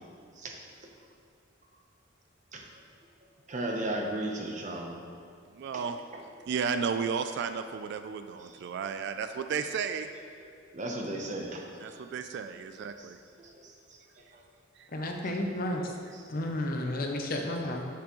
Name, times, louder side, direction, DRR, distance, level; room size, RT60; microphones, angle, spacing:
voice 1, 3.5-5.0 5.7-5.9 6.1-6.2 8.4-8.6 10.4-12.1 13.0-13.1 13.4-14.4 16.1-16.3 17.3-17.4, right 1 dB, 40° right, 1 dB, 0.8 m, -37 dB
voice 2, 5.6-5.9 6.5-10.1 11.8-13.2, right 6 dB, 60° right, 9 dB, 0.3 m, -33 dB
voice 3, 14.9-15.8 16.3-17.8, left 1 dB, 45° left, 3 dB, 0.7 m, -32 dB
7.5 x 6.9 x 3.1 m, 2.2 s
head